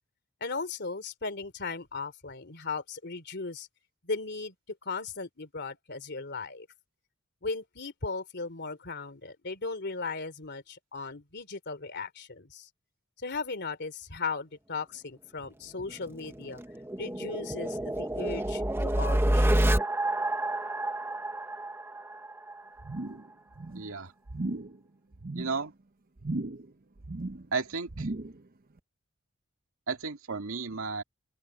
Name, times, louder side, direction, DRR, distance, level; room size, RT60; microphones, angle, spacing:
voice 1, 0.4-3.7 4.0-6.7 7.4-12.7 13.2-16.6 17.0-19.7, left 4 dB, 55° left, 3.0 m, -37 dB
sound 1, 15.8-22.6, right 1 dB, 10° right, 1.0 m, -29 dB
sound 2, 22.8-23.3 23.5-23.9 24.3-24.8 25.1-25.6 26.2-26.7 27.0-27.5 27.9-28.4 28.8-28.9, right 2 dB, 45° right, 0.8 m, -36 dB
voice 2, 23.7-24.1 25.4-25.7 27.5-28.1 29.9-31.0, right 4 dB, 75° right, 2.2 m, -33 dB
open air
head